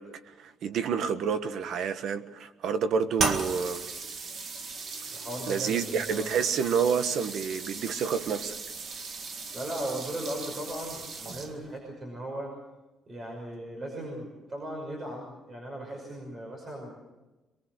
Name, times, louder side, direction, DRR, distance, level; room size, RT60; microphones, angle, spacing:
voice 1, 0.0-3.8 5.5-8.6, right 6 dB, 65° right, 1.4 m, -29 dB
sound 1, 3.2-11.8, right 4 dB, 50° right, 2.0 m, -36 dB
voice 2, 5.1-6.3 9.5-12.5 13.1-16.9, right 1 dB, 30° right, 5.9 m, -37 dB
23.5 x 22.0 x 6.6 m
cardioid pair, 140°, 0 cm